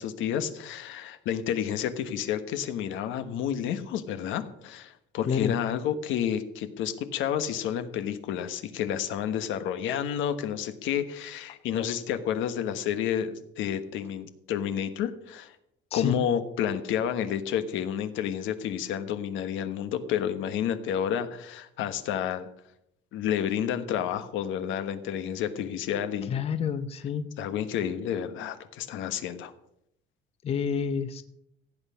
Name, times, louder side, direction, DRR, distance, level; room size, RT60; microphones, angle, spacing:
voice 1, 0.0-15.5 15.9-22.5 23.1-26.4 27.4-29.5, left 9 dB, 80° left, 10 dB, 1.2 m, -30 dB
voice 2, 26.3-27.3 30.4-31.2, left 7 dB, 30° left, 10 dB, 0.6 m, -28 dB
15.5 x 8.5 x 5.7 m, 0.77 s
cardioid pair, 160°, 20 cm